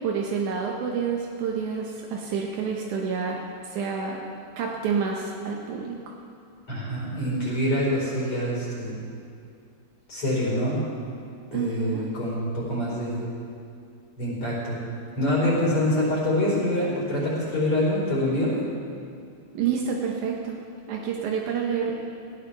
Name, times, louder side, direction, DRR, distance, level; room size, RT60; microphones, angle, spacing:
voice 1, 0.0-6.0 11.5-12.0 19.5-21.9, right 6 dB, 75° right, -1 dB, 1.8 m, -29 dB
voice 2, 6.7-9.1 10.1-10.9 11.5-13.2 14.2-14.8 15.2-18.5, left 1 dB, 35° left, -5 dB, 5.2 m, -25 dB
20.0 x 16.0 x 3.4 m, 2.4 s
omnidirectional pair, 4.9 m